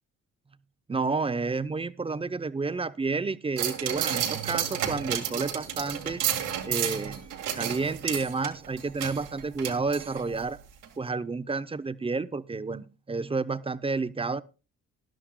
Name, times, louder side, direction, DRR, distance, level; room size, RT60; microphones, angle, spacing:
voice 1, 0.9-6.2 6.6-7.2 7.5-10.6 11.0-14.4, right 4 dB, 20° right, 0.6 m, -30 dB
sound 1, 3.6-10.5 10.8-10.9, right 9 dB, 90° right, 1.9 m, -32 dB
sound 2, 4.1-5.5, right 10 dB, 65° right, 1.3 m, -43 dB
19.0 x 11.0 x 2.2 m
cardioid pair, 90°, 30 cm